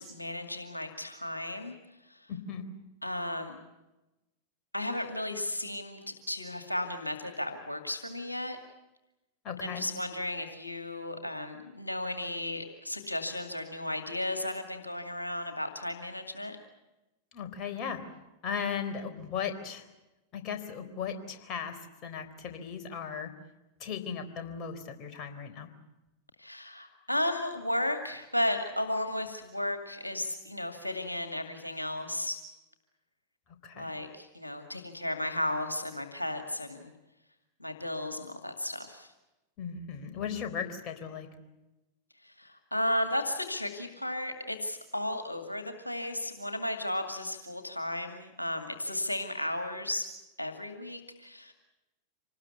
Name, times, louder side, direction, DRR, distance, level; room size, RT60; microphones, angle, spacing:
voice 1, 0.0-1.7 2.1-2.3 3.0-3.6 4.7-8.6 9.6-16.6 26.4-32.4 33.7-36.9 37.6-39.1 42.2-50.0 50.4-51.5, left 1 dB, 85° left, 6 dB, 2.2 m, -34 dB
voice 2, 2.3-2.7 9.4-9.9 17.3-18.0 18.4-19.9 20.3-23.3 23.8-25.7 33.6-33.9 39.6-41.3, left 7 dB, 35° left, 6 dB, 4.0 m, -37 dB
26.5 x 19.5 x 8.3 m, 1.0 s
figure-of-eight pair, 90°, 0 cm